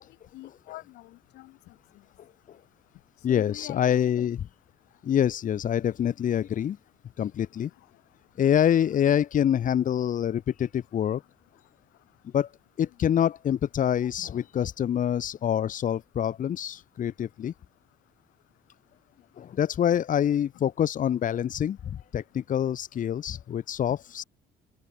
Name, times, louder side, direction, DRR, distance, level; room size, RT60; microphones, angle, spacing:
voice 1, 0.3-1.7 3.3-4.3 8.9-9.2 14.2-14.3, left 18 dB, 85° left, 6.8 m, -45 dB
voice 2, 3.2-4.4 5.0-6.8 7.2-7.7 8.4-11.2 12.3-12.5 12.8-17.5 19.4-24.2, left 9 dB, 50° left, 2.8 m, -26 dB
open air
cardioid pair, 110°, 17 cm